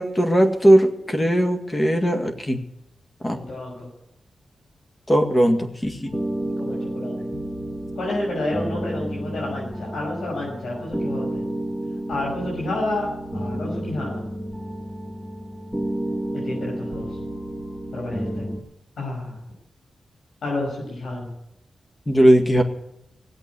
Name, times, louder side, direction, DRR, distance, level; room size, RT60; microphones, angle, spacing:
voice 1, 0.0-2.6 3.2-3.4 5.1-6.1 22.1-22.6, right 1 dB, 25° left, 4 dB, 2.0 m, -18 dB
voice 2, 3.3-3.9 6.6-7.3 8.0-11.4 12.1-13.1 13.3-14.2 16.4-17.1 17.9-18.5 19.0-19.4 20.4-21.3, left 2 dB, 85° left, -4 dB, 6.2 m, -30 dB
sound 1, 6.0-18.6, right 1 dB, 5° left, 2.3 m, -31 dB
17.0 x 8.1 x 9.6 m, 0.85 s
cardioid pair, 80°, 0 cm